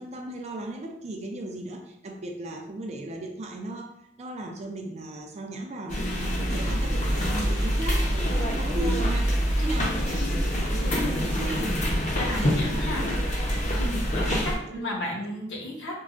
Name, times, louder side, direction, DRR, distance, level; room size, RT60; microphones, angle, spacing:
voice 1, 0.0-3.9 4.2-10.2 10.6-11.6 12.3-13.1 14.2-14.9 15.2-15.3, right 2 dB, 35° right, 3 dB, 0.4 m, -37 dB
sound 1, 5.9-14.6, equal, 40° left, 0.6 m, -25 dB
voice 2, 9.6-9.9 12.1-13.0 13.8-15.9, left 1 dB, 70° left, -2 dB, 1.0 m, -33 dB
4.5 x 2.1 x 2.5 m, 0.76 s
head